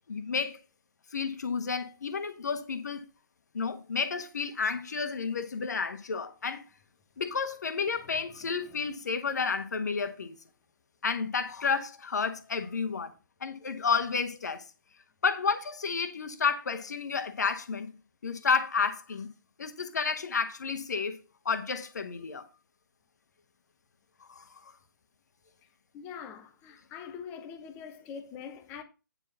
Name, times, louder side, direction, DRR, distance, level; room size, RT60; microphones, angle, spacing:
voice 1, 0.1-0.6 1.1-3.0 3.5-6.6 7.2-10.4 11.0-13.1 13.4-14.6 15.2-17.9 18.2-19.3 19.6-21.2 21.4-22.5 24.2-24.7, left 5 dB, 55° left, 1.4 m, -31 dB
voice 2, 25.9-28.8, left 7 dB, 20° left, 1.2 m, -43 dB
9.6 x 4.7 x 5.9 m
figure-of-eight pair, 135°, 11 cm